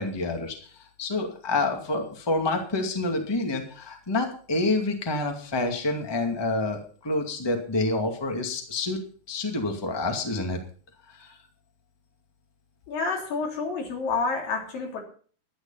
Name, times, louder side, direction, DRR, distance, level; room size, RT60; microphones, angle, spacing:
voice 1, 0.0-10.6 11.1-11.4, left 2 dB, 10° left, 3 dB, 1.6 m, -28 dB
voice 2, 12.9-15.0, left 4 dB, 80° left, 1 dB, 5.1 m, -29 dB
11.5 x 11.5 x 5.6 m, 0.43 s
omnidirectional pair, 4.0 m